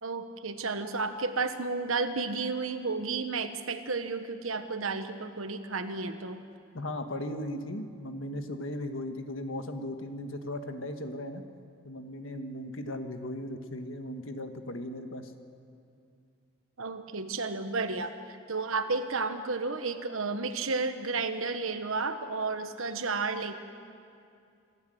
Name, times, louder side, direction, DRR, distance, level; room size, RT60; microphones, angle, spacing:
voice 1, 0.0-6.4 16.8-23.6, right 4 dB, 80° right, 9 dB, 1.2 m, -32 dB
voice 2, 6.7-11.4 11.8-15.3, left 1 dB, 70° left, 7 dB, 1.5 m, -37 dB
26.0 x 13.0 x 7.9 m, 2.4 s
head